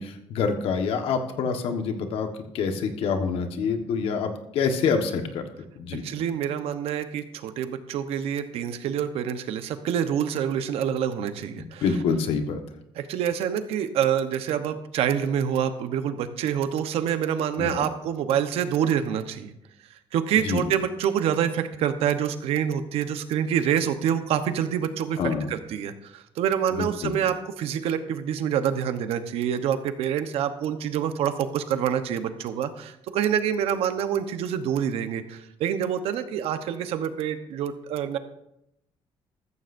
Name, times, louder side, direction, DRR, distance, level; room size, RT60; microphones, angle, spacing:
voice 1, 0.0-2.3 2.5-5.4 5.7-6.0 11.6-12.6 17.6-17.7 20.3-20.6 25.2-25.5 26.7-27.1, left 5 dB, 75° left, 6 dB, 1.4 m, -26 dB
voice 2, 5.9-11.8 13.0-19.5 20.1-38.2, right 9 dB, 90° right, 9 dB, 1.0 m, -26 dB
14.0 x 14.0 x 2.6 m, 0.80 s
cardioid pair, 170°, 10 cm